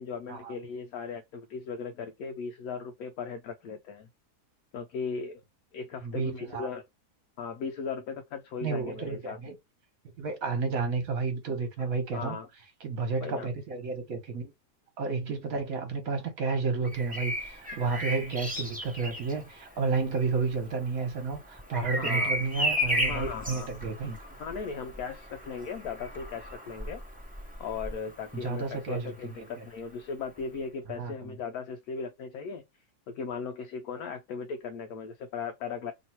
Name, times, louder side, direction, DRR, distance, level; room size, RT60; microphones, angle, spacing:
voice 1, 0.0-4.1 4.7-5.4 5.7-6.9 7.4-9.4 11.8-12.5 13.2-13.5 22.0-22.3 23.1-23.7 24.4-27.0 27.6-32.6 33.1-35.9, left 5 dB, 70° left, 1.0 m, -37 dB
voice 2, 6.0-6.7 8.6-9.6 10.2-12.4 12.8-14.5 15.0-24.2 28.3-29.7 30.9-31.4, right 4 dB, 60° right, 1.5 m, -31 dB
Bird vocalization bird call bird song, 16.8-28.6 30.4-30.6, equal, 5° right, 1.2 m, -34 dB
3.1 x 2.8 x 4.3 m
omnidirectional pair, 1.7 m